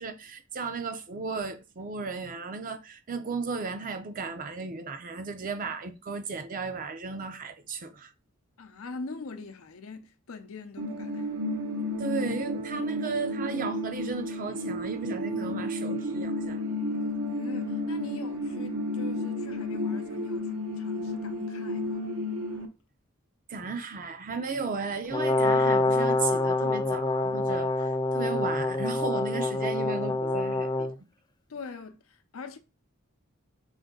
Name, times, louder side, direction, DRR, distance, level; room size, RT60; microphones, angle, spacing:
voice 1, 0.0-8.1 12.0-16.6 23.5-30.9, right 4 dB, 40° right, 0.6 m, -35 dB
voice 2, 8.6-11.3 17.3-22.1 31.5-32.6, left 4 dB, 85° left, 0.6 m, -43 dB
sound 1, 10.8-22.7, left 1 dB, 70° right, 0.8 m, -32 dB
Brass instrument, 25.1-30.9, left 2 dB, 20° left, 0.3 m, -26 dB
5.1 x 2.6 x 3.7 m
head